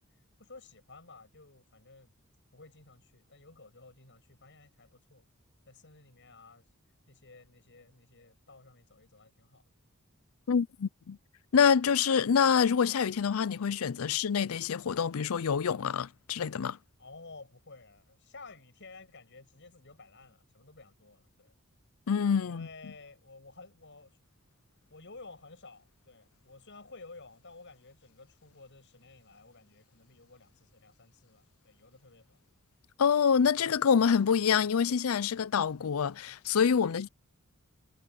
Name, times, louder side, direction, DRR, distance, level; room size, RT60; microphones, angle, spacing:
voice 1, 0.4-2.1 2.5-5.3 5.7-6.6 7.1-9.6 17.0-21.5 22.4-24.2 24.9-32.4 36.9-37.0, left 3 dB, 60° left, 7.6 m, -53 dB
voice 2, 10.5-11.2 11.5-16.8 22.1-22.7 33.0-37.1, left 6 dB, 80° left, 0.5 m, -26 dB
head